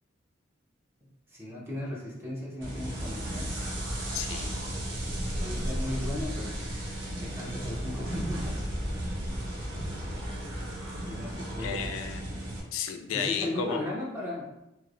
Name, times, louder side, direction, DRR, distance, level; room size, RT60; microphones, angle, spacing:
voice 1, 1.0-3.6 5.4-6.9 7.2-9.0 11.1-11.9 13.1-14.5, left 1 dB, 10° right, -5 dB, 0.6 m, -37 dB
sound 1, 2.6-12.6, right 1 dB, 70° right, 0.6 m, -34 dB
voice 2, 4.1-4.7 11.6-12.2 12.7-13.8, left 6 dB, 90° left, 6 dB, 0.3 m, -33 dB
3.0 x 2.0 x 2.4 m, 0.92 s
head